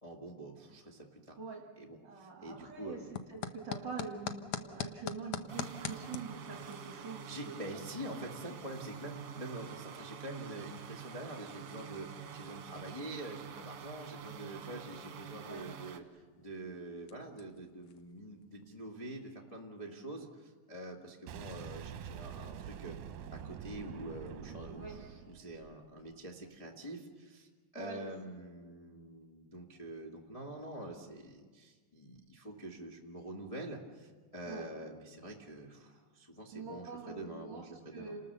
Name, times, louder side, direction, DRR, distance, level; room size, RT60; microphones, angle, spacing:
voice 1, 0.0-1.4 1.8-3.1 7.3-22.9 23.3-38.2, right 1 dB, 15° left, -2 dB, 1.2 m, -46 dB
voice 2, 2.0-7.5 15.4-15.7 24.8-25.0 27.7-28.1 34.5-34.6 36.5-38.2, right 4 dB, 35° right, 0 dB, 2.2 m, -45 dB
sound 1, 2.4-18.7, left 8 dB, 80° left, 1.3 m, -48 dB
sound 2, 5.5-16.0, right 8 dB, 60° right, 2.2 m, -47 dB
Boom, 21.3-26.1, right 8 dB, 75° right, 2.1 m, -46 dB
30.0 x 19.5 x 6.9 m, 1.5 s
omnidirectional pair, 3.9 m